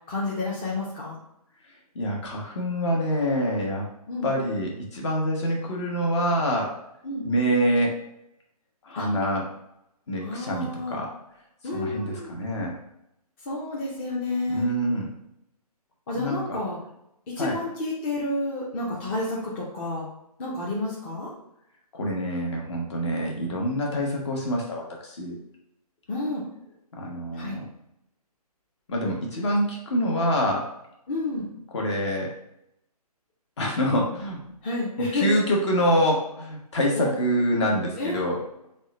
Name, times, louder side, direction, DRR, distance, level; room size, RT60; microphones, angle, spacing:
voice 1, 0.1-1.2 4.1-4.3 7.0-7.3 8.9-9.1 10.2-11.0 11.6-12.3 13.5-14.7 16.1-16.8 17.3-20.1 20.4-21.3 26.1-26.5 27.3-27.6 31.1-31.5 34.6-35.4 36.9-37.1 38.0-38.3, left 2 dB, 20° left, -6 dB, 0.6 m, -30 dB
voice 2, 1.9-3.9 4.2-6.7 7.2-7.9 8.8-9.5 10.1-11.1 11.7-12.7 14.5-15.1 16.1-16.6 17.4-17.6 21.9-25.3 27.0-27.6 28.9-30.6 31.7-32.3 33.6-34.4 35.1-38.4, equal, 45° left, -1 dB, 1.0 m, -26 dB
3.5 x 2.2 x 4.0 m, 0.79 s
hypercardioid pair, 150°, 20 cm